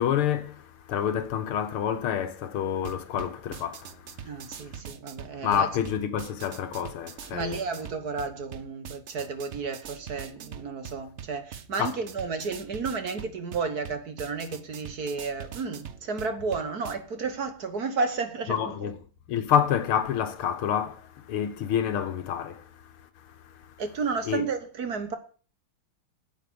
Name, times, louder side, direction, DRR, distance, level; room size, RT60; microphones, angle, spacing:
voice 1, 0.0-4.8 5.4-7.6 11.8-11.9 18.5-19.0 19.3-23.8 24.3-24.4, left 9 dB, 80° left, 2.0 m, -28 dB
sound 1, 2.8-16.9, right 8 dB, 75° right, 0.6 m, -44 dB
voice 2, 4.2-5.7 7.3-18.9 23.8-25.2, right 4 dB, 50° right, 1.7 m, -32 dB
9.4 x 8.3 x 6.9 m
omnidirectional pair, 2.3 m